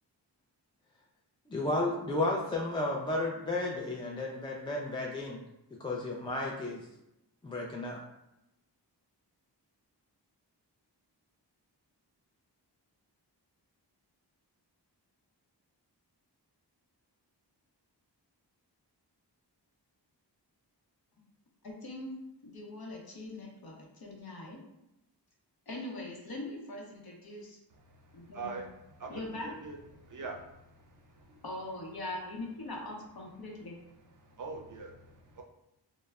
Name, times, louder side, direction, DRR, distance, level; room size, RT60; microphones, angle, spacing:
voice 1, 1.5-5.4 5.8-6.8 7.4-8.0, left 2 dB, 15° left, -2 dB, 0.3 m, -33 dB
voice 2, 21.6-22.1 22.4-24.6 25.7-27.6 28.1-28.6 29.1-29.5 31.4-33.8, left 2 dB, 55° left, -1 dB, 0.7 m, -42 dB
voice 3, 28.3-28.7 29.0-29.8 30.1-30.5 31.2-31.3 34.4-35.4, right 3 dB, 45° right, 1 dB, 0.5 m, -42 dB
3.1 x 2.0 x 2.3 m, 0.87 s
wide cardioid pair, 60°, 43 cm